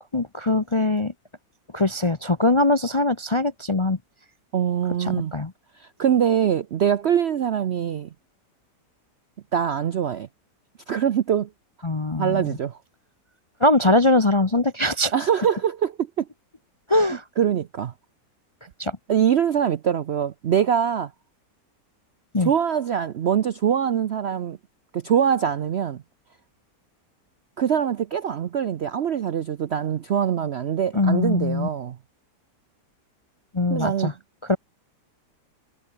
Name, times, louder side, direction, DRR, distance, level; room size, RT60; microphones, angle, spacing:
voice 1, 0.1-1.1 1.7-4.0 5.0-5.5 11.8-12.5 13.6-15.1 16.9-17.2 18.8-19.0 22.3-22.5 30.9-31.7 33.5-34.1 34.5-34.6, left 2 dB, 25° left, 0.6 m, -21 dB
voice 2, 4.5-5.3 5.8-8.1 9.5-10.3 10.9-11.5 12.2-12.8 15.1-16.3 17.4-17.9 19.1-21.1 22.4-24.6 24.9-26.0 27.6-32.0 33.7-34.1, right 8 dB, 60° right, 0.7 m, -23 dB
omnidirectional pair, 1.8 m